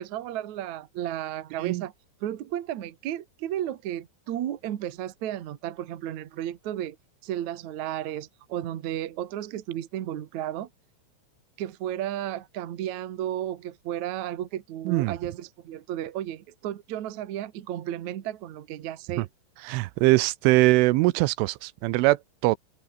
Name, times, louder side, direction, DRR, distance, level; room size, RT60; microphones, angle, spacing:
voice 1, 0.0-1.9 2.2-7.0 7.2-10.7 11.6-19.3, right 12 dB, 65° right, 1.9 m, -33 dB
voice 2, 19.6-22.6, right 21 dB, 85° right, 3.2 m, -22 dB
omnidirectional pair, 5.5 m